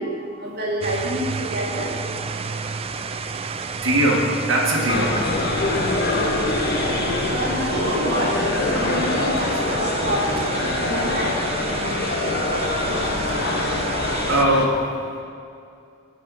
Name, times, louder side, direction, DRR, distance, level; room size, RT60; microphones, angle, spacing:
voice 1, 0.0-2.0 7.1-11.7, right 1 dB, 55° right, -3 dB, 1.5 m, -28 dB
sound 1, 0.8-14.4, right 4 dB, 30° right, 0.4 m, -31 dB
voice 2, 3.8-5.1 14.3-14.9, right 1 dB, 90° right, -3 dB, 1.9 m, -20 dB
sound 2, 4.9-14.7, left 2 dB, 55° left, 1.0 m, -24 dB
15.5 x 5.6 x 5.5 m, 2.4 s
head